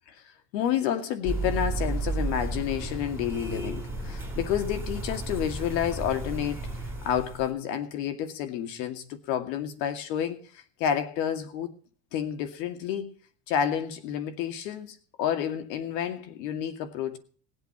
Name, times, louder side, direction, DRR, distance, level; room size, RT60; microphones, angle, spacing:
voice 1, 0.2-6.6 7.0-11.8 12.1-13.1 13.5-17.2, left 9 dB, 90° left, 2.4 m, -30 dB
sound 1, 1.2-7.5, right 2 dB, 5° right, 4.6 m, -33 dB
19.0 x 8.0 x 6.1 m
cardioid pair, 140°, 49 cm